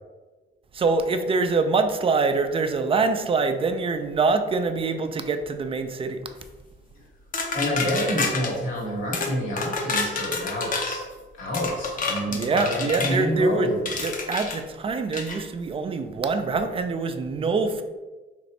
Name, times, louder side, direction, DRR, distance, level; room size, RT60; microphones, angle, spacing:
voice 1, 0.7-6.2 12.3-13.7 14.0-17.8, right 4 dB, 30° right, 8 dB, 0.4 m, -24 dB
sound 1, 7.3-8.5 9.1-9.3 9.6-11.0 11.5-13.2 13.9-14.6 15.1-15.4, left 4 dB, 45° left, 0.6 m, -28 dB
voice 2, 7.5-11.0 11.4-13.9, equal, 85° left, -3 dB, 1.3 m, -28 dB
3.0 x 2.6 x 4.1 m, 1.3 s
cardioid pair, 90°, 20 cm